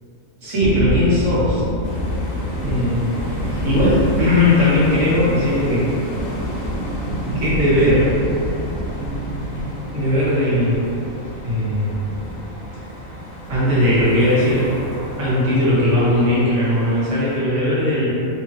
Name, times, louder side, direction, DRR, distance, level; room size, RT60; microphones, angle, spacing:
voice 1, 0.4-1.6 2.6-3.2 3.4-5.9 7.3-8.1 9.9-10.8 11.4-11.9 13.5-14.7 15.2-18.1, left 1 dB, 65° right, -9 dB, 1.4 m, -18 dB
sound 1, 0.6-16.4, equal, 85° right, 1.0 m, -28 dB
sound 2, 1.8-17.4, equal, 60° left, 0.9 m, -35 dB
3.6 x 2.9 x 3.0 m, 2.7 s
omnidirectional pair, 1.4 m